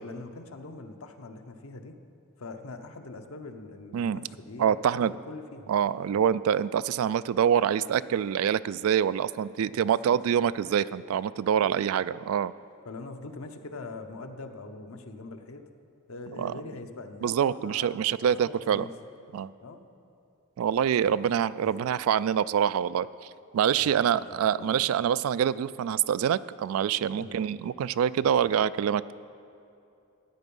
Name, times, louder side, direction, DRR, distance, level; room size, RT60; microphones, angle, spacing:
voice 1, 0.0-2.0 2.4-5.7 9.7-10.1 11.6-11.9 12.8-15.6 16.1-17.9 18.4-18.9 19.6-19.8 21.0-21.2 21.6-21.8 23.8-24.7 27.2-27.5 28.4-28.5, left 3 dB, 85° left, 6 dB, 0.8 m, -43 dB
voice 2, 4.6-5.1 5.7-12.5 16.4-16.5 17.2-18.8 19.3-19.5 20.6-29.1, right 8 dB, 85° right, 17 dB, 0.3 m, -26 dB
13.0 x 9.3 x 5.4 m, 2.7 s
head